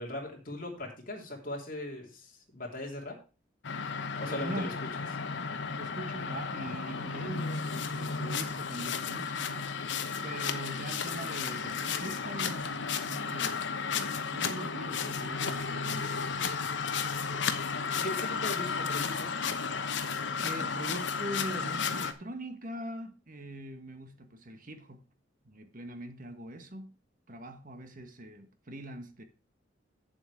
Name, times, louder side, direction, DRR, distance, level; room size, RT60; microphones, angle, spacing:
voice 1, 0.0-3.2 4.2-4.7 17.7-19.3, left 1 dB, 45° left, 3.0 m, -39 dB
sound 1, 3.6-22.1, left 5 dB, 65° left, 0.9 m, -33 dB
voice 2, 4.2-4.7 5.7-9.9 10.2-13.7 14.3-16.7 20.4-25.1 25.4-27.0 27.3-29.2, right 1 dB, 45° right, 1.5 m, -42 dB
8.4 x 7.5 x 4.8 m
head